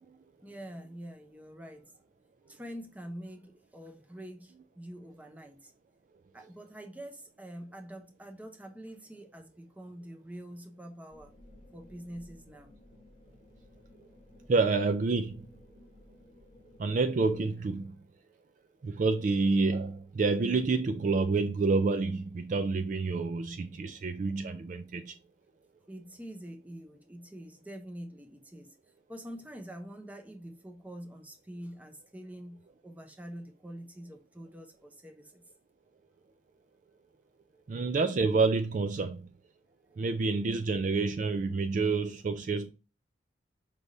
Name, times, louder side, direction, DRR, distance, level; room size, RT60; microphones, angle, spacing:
voice 1, 0.4-1.9 2.5-5.7 6.3-11.3 11.7-12.8 25.9-28.7 29.1-35.5 39.9-40.4, equal, 10° right, 0.6 m, -46 dB
sound 1, 11.1-17.4, left 1 dB, 30° left, 0.9 m, -57 dB
voice 2, 14.5-15.5 16.8-18.0 18.8-25.2 37.7-39.3 40.0-42.7, right 4 dB, 45° right, 0.3 m, -28 dB
5.1 x 3.3 x 2.6 m
head